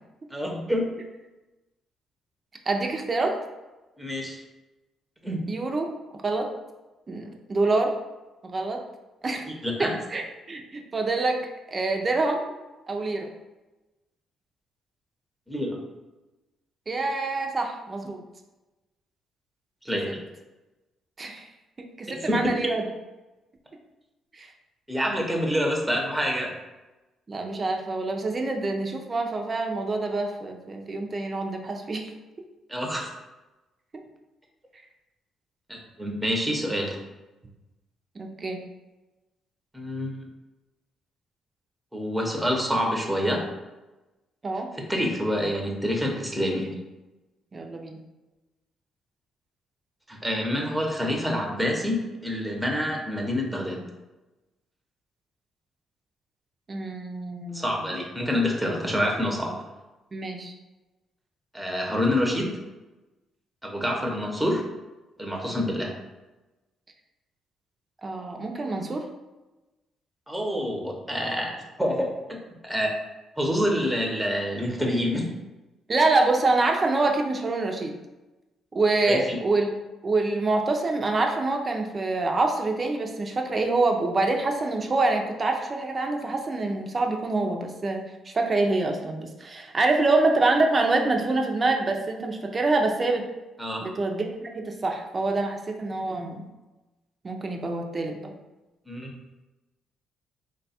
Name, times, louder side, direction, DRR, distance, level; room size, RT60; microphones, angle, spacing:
voice 1, 0.3-0.8 4.0-4.4 5.2-5.4 9.6-9.9 15.5-15.8 19.8-20.2 22.1-22.4 24.9-26.5 32.7-33.1 35.7-37.0 39.7-40.1 41.9-43.5 44.9-46.7 50.1-53.8 57.5-59.6 61.5-62.6 63.6-64.6 65.2-65.9 70.3-72.4 72.6-72.9 73.4-75.3 79.1-79.4 93.6-93.9 98.9-99.1, equal, 5° right, 0 dB, 0.8 m, -27 dB
voice 2, 2.7-3.4 5.5-5.9 6.2-6.5 7.1-7.9 8.4-8.8 9.2-9.5 10.1-11.4 11.7-12.4 12.9-13.3 16.9-18.2 21.2-21.5 21.8-22.8 24.4-24.5 27.3-32.1 38.2-38.6 44.4-44.7 47.5-48.0 56.7-57.7 60.1-60.5 68.0-69.1 75.9-77.9 78.7-79.7 80.0-93.3 93.8-96.4 97.2-98.3, right 3 dB, 35° right, 3 dB, 0.5 m, -26 dB
3.2 x 2.3 x 4.2 m, 1.1 s
cardioid pair, 90°, 0 cm